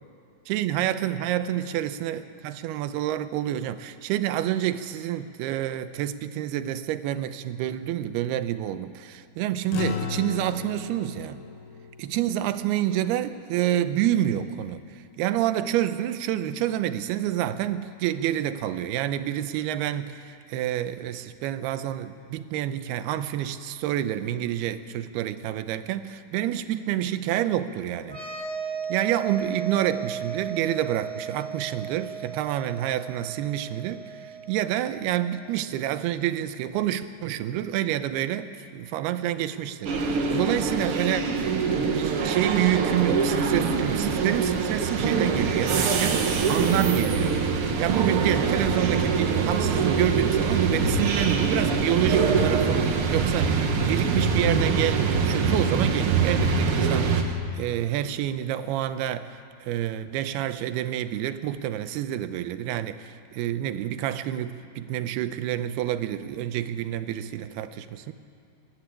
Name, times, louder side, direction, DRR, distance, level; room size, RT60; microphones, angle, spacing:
voice 1, 0.5-11.4 12.0-28.2 28.9-41.5 41.8-47.4 47.8-68.1, right 12 dB, 90° right, 11 dB, 2.8 m, -28 dB
sound 1, 9.7-14.4, left 7 dB, 80° left, 3.1 m, -36 dB
sound 2, 28.0-35.5, right 6 dB, 25° left, 4.1 m, -36 dB
sound 3, 39.8-57.2, right 5 dB, 65° right, 1.3 m, -24 dB
22.5 x 12.0 x 9.7 m, 2.7 s
omnidirectional pair, 4.5 m